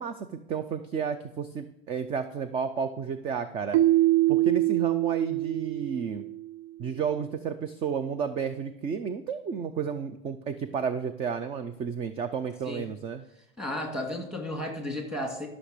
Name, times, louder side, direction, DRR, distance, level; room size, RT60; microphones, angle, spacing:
voice 1, 0.0-3.8 4.3-6.2 6.8-13.2, right 6 dB, 20° right, 11 dB, 0.4 m, -32 dB
Keyboard (musical), 3.7-6.6, right 16 dB, 60° right, 0.7 m, -24 dB
voice 2, 13.6-15.5, left 1 dB, ahead, 2 dB, 2.2 m, -33 dB
13.0 x 6.2 x 6.6 m, 0.80 s
supercardioid pair, 140°, 32 cm